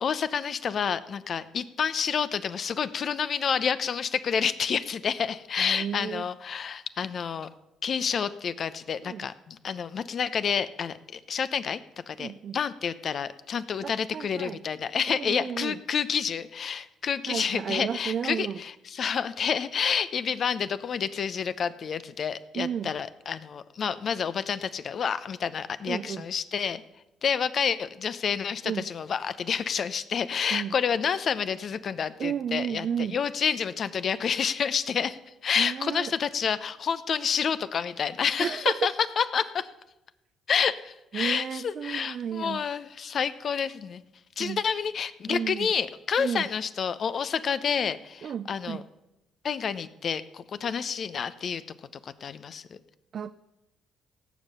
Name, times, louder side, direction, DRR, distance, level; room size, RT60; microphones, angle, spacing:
voice 1, 0.0-7.5 7.8-11.8 12.1-26.8 27.2-39.7 40.5-44.0 44.4-48.8 49.4-51.6 52.0-52.8, left 7 dB, 55° left, 14 dB, 0.8 m, -29 dB
voice 2, 5.6-6.3 9.0-9.3 12.2-12.6 13.8-14.6 15.1-15.8 17.3-18.6 22.5-22.9 25.8-26.3 28.7-28.9 30.5-30.8 32.2-33.2 35.5-36.1 38.4-38.9 41.1-42.6 44.4-44.6 45.3-45.7 46.2-46.5 48.2-48.9 53.1-53.3, right 8 dB, 55° right, 10 dB, 0.5 m, -32 dB
17.5 x 7.4 x 6.8 m, 0.95 s
hypercardioid pair, 55°, 0 cm